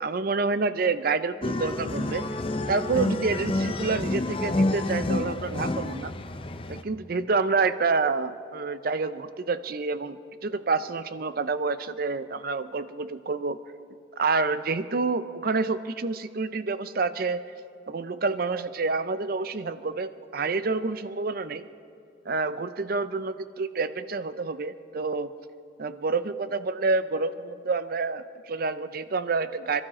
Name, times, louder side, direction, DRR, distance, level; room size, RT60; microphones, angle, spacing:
voice 1, 0.0-2.2 2.7-6.1 6.7-13.6 14.2-17.4 17.9-21.7 22.3-25.3 25.8-29.8, right 4 dB, 45° right, 13 dB, 0.5 m, -28 dB
sound 1, 1.4-6.8, left 2 dB, 25° left, 0.5 m, -29 dB
27.0 x 12.5 x 4.2 m, 2.6 s
head